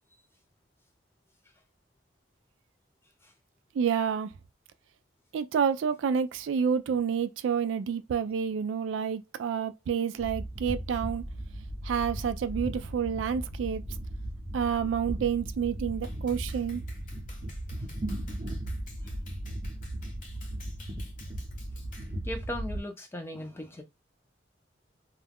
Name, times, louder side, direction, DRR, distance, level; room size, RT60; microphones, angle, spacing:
voice 1, 3.7-4.3 5.3-11.2 11.8-13.8 14.5-16.8, right 7 dB, 80° right, 0.3 m, -29 dB
sound 1, 10.2-22.8, right 1 dB, 35° right, 0.7 m, -37 dB
Clapping, 16.0-22.2, left 3 dB, 45° left, 0.9 m, -53 dB
voice 2, 22.2-23.8, left 1 dB, 15° left, 0.6 m, -38 dB
2.3 x 2.2 x 3.5 m
head